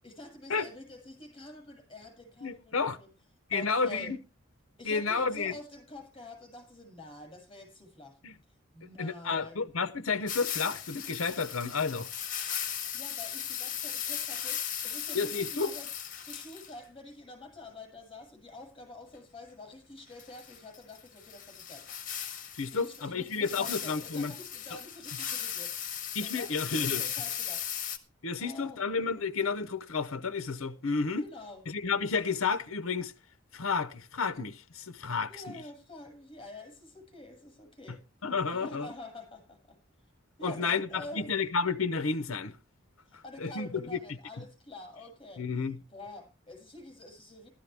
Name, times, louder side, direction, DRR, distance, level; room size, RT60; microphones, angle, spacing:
voice 1, 0.0-3.1 3.5-4.1 4.8-8.2 8.7-9.6 12.9-15.9 16.2-21.8 22.7-25.8 26.2-27.6 28.4-28.8 31.2-31.6 35.3-38.0 38.5-39.8 40.4-41.3 43.1-45.4 45.9-47.5, left 2 dB, 25° left, 7.4 m, -47 dB
voice 2, 2.4-3.0 3.5-4.2 4.8-5.6 8.2-8.4 9.0-12.1 15.1-15.7 22.6-24.3 24.7-24.8 26.1-27.0 28.2-31.2 31.7-33.1 33.5-35.6 38.2-38.9 40.4-42.5 43.4-44.0 44.4-44.5 45.4-45.8, left 4 dB, 75° left, 0.8 m, -31 dB
sound 1, 10.3-16.7 20.2-28.0, left 9 dB, 40° left, 1.6 m, -37 dB
15.0 x 13.0 x 3.4 m
head